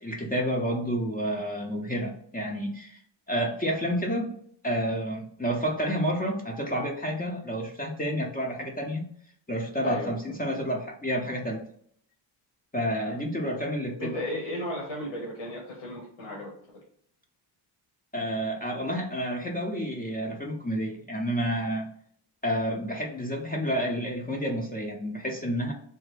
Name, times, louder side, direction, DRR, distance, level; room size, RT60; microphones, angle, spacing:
voice 1, 0.0-3.0 3.3-4.4 4.6-9.1 9.5-11.6 12.7-14.2 18.1-21.9 22.4-25.7, equal, 20° left, 0 dB, 0.6 m, -30 dB
voice 2, 9.8-10.2 13.0-13.2 14.0-16.5, left 1 dB, 75° left, -3 dB, 1.2 m, -35 dB
3.3 x 2.1 x 3.3 m, 0.63 s
cardioid pair, 65°, 49 cm